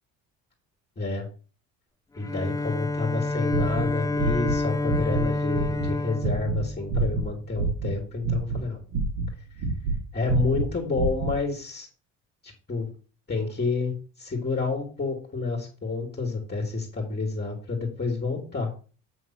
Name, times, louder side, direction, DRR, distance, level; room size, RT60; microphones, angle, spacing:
voice 1, 1.0-1.3 2.2-8.8 10.1-11.9 12.4-12.9 13.3-18.7, left 3 dB, 30° left, -1 dB, 2.6 m, -29 dB
Bowed string instrument, 2.2-7.4, left 2 dB, 10° left, 0.4 m, -29 dB
sound 1, 3.5-4.6 4.8-5.2 5.5-8.0 8.2-10.0 10.3-11.3, right 3 dB, 75° right, 2.8 m, -27 dB
8.3 x 3.6 x 6.2 m, 0.37 s
supercardioid pair, 90°, 35 cm